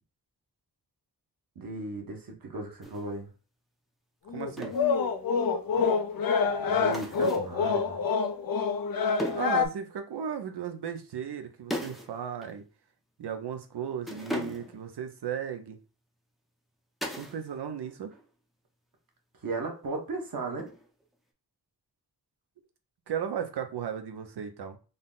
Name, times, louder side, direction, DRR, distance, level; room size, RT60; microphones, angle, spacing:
voice 1, 1.5-3.3 6.4-8.0 19.4-20.7, right 3 dB, 60° right, 1.3 m, -36 dB
sound 1, 2.8-3.0 4.6-4.9 6.9-7.5 9.2-9.6 11.7-12.1 12.4-12.5 14.0-14.9 17.0-17.4 17.7-18.3 20.6-21.0, equal, ahead, 0.6 m, -37 dB
sound 2, 4.3-9.7, left 5 dB, 65° left, 0.5 m, -27 dB
voice 2, 4.3-4.7 9.3-12.6 13.2-15.8 17.2-18.2 23.1-24.8, right 8 dB, 85° right, 0.7 m, -35 dB
3.9 x 2.1 x 3.8 m
wide cardioid pair, 115°, 39 cm